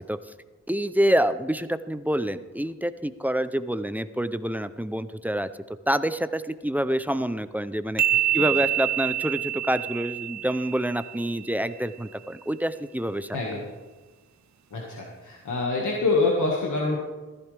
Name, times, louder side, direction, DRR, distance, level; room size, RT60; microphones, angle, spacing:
voice 1, 0.7-5.5 5.9-8.0 8.3-13.4, right 1 dB, 5° right, 12 dB, 0.5 m, -27 dB
sound 1, 8.0-11.5, right 12 dB, 70° right, 0.5 m, -27 dB
voice 2, 8.1-8.5 13.3-13.6 14.7-17.0, left 3 dB, 85° left, -2 dB, 1.8 m, -26 dB
15.0 x 14.0 x 3.4 m, 1.2 s
wide cardioid pair, 80°, 29 cm